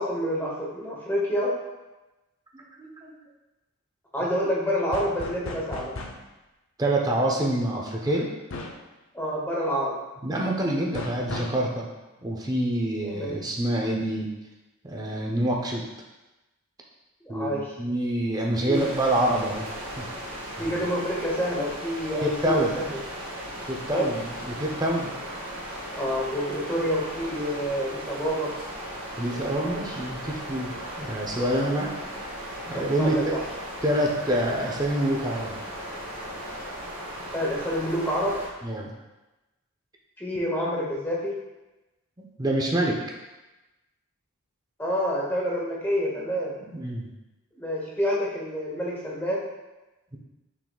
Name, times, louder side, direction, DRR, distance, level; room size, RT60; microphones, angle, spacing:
voice 1, 0.0-1.5 4.1-5.9 9.1-9.9 13.0-13.4 17.3-17.7 18.7-18.9 20.6-22.9 23.9-24.1 25.9-28.5 29.6-30.0 32.7-33.4 37.3-38.4 40.2-41.4 44.8-46.6 47.5-49.4, equal, 10° left, -5 dB, 0.9 m, -28 dB
voice 2, 2.5-3.2 6.8-8.3 10.2-11.9 12.2-14.3 14.8-15.8 17.3-17.5 17.8-19.7 20.0-20.1 20.6-20.7 22.4-22.8 23.7-25.1 29.2-30.7 31.0-31.9 32.7-33.4 33.8-35.5 38.6-38.9 42.4-43.0 46.6-47.1, right 1 dB, 15° right, -1 dB, 0.5 m, -26 dB
sound 1, 4.9-6.3 8.5-8.9 10.9-11.6, left 2 dB, 60° left, 0.5 m, -37 dB
sound 2, 18.7-38.5, equal, 70° right, 1.2 m, -37 dB
5.9 x 3.8 x 2.3 m, 1.1 s
head